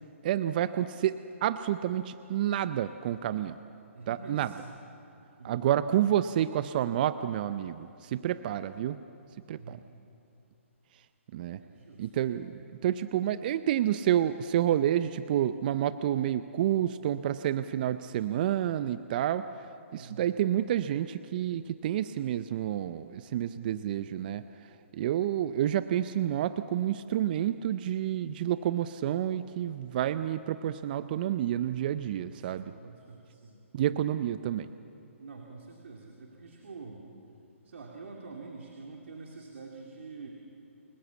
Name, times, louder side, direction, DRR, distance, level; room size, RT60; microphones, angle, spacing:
voice 1, 0.2-3.6 4.1-4.5 5.4-9.0 9.5-9.8 11.3-11.6 12.0-19.7 19.9-32.7 33.7-34.7, right 11 dB, 40° right, 13 dB, 0.6 m, -29 dB
voice 2, 3.9-4.7 5.4-5.6 9.5-9.9 11.6-12.1 19.9-20.2 32.7-33.6 35.2-37.1 37.6-40.3, right 4 dB, 65° right, 0 dB, 2.9 m, -46 dB
28.5 x 20.0 x 7.2 m, 2.7 s
hypercardioid pair, 140°, 7 cm